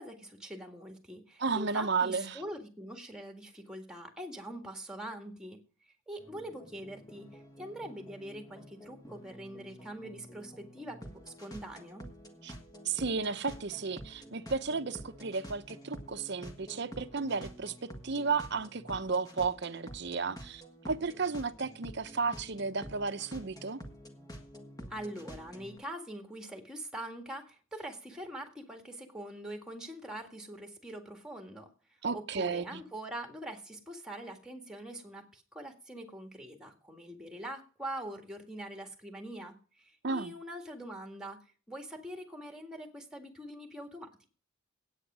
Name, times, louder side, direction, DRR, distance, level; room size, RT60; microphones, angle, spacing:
voice 1, 0.0-5.6 6.1-12.0 24.9-31.7 32.1-44.3, right 1 dB, 5° right, 1.8 m, -43 dB
voice 2, 1.4-2.4 12.4-12.5 12.8-23.8 32.0-32.8 40.0-40.3, right 4 dB, 50° right, 0.8 m, -33 dB
sound 1, 6.2-25.8, equal, 15° left, 1.4 m, -49 dB
9.7 x 8.9 x 6.2 m
head